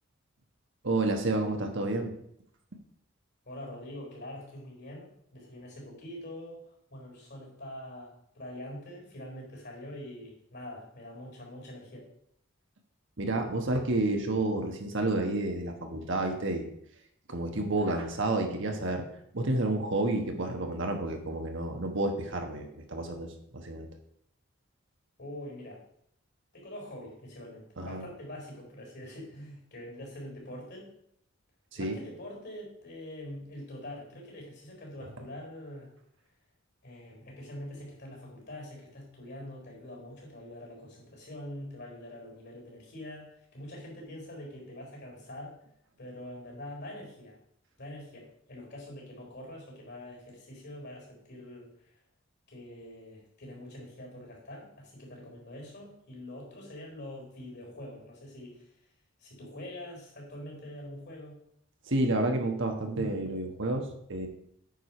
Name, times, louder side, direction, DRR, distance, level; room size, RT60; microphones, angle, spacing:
voice 1, 0.8-2.1 13.2-16.7 17.3-19.0 19.3-23.3 23.5-23.9 27.8-28.0 31.8-32.0 61.9-64.3, right 2 dB, 60° right, 4 dB, 1.3 m, -30 dB
voice 2, 3.5-12.1 25.2-25.8 26.5-30.9 31.8-35.9 36.8-45.5 46.0-47.4 47.8-51.9 52.5-58.7 59.2-61.4, left 1 dB, 55° left, -1 dB, 4.2 m, -44 dB
9.2 x 4.9 x 5.9 m, 0.72 s
head